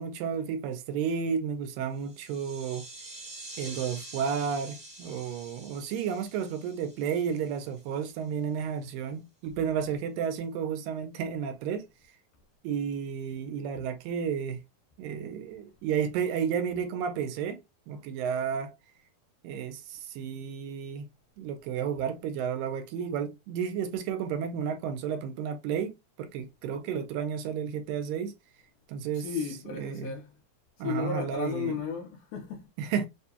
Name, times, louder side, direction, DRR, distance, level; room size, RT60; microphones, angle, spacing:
voice 1, 0.0-2.8 3.6-11.8 12.6-14.6 15.0-17.6 17.9-18.7 19.4-21.1 21.4-28.3 28.9-29.3 29.7-30.2 30.8-31.8 32.8-33.1, right 7 dB, 80° right, 2.3 m, -32 dB
sound 1, 1.9-8.0, right 2 dB, 40° right, 0.7 m, -47 dB
voice 2, 29.2-30.3 30.8-32.7, left 6 dB, 75° left, 2.0 m, -34 dB
6.6 x 2.3 x 2.8 m
omnidirectional pair, 4.2 m